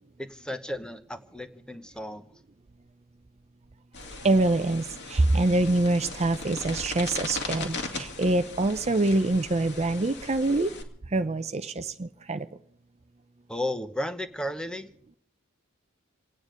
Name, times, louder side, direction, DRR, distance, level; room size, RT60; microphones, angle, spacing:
voice 1, 0.2-2.2 13.5-14.9, left 1 dB, 5° left, 10 dB, 0.8 m, -34 dB
sound 1, 3.9-10.8, left 3 dB, 50° left, 2.5 m, -38 dB
voice 2, 4.2-10.7 11.1-12.5, right 2 dB, 30° right, 10 dB, 0.6 m, -25 dB
27.5 x 9.7 x 5.1 m, 0.63 s
head